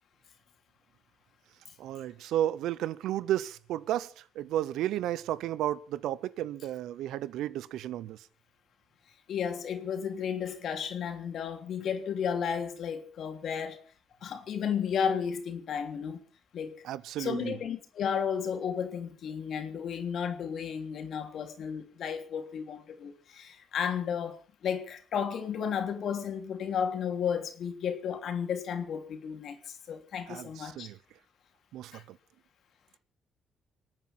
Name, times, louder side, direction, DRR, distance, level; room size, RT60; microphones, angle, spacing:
voice 1, 1.8-8.2 16.8-17.5 30.3-31.0 31.7-32.2, right 12 dB, 85° right, 0.8 m, -33 dB
voice 2, 9.3-13.8 14.2-16.2 16.5-16.9 17.2-30.9 31.9-32.0, left 7 dB, 65° left, 3.1 m, -33 dB
26.5 x 9.0 x 5.7 m
cardioid pair, 90°, 0 cm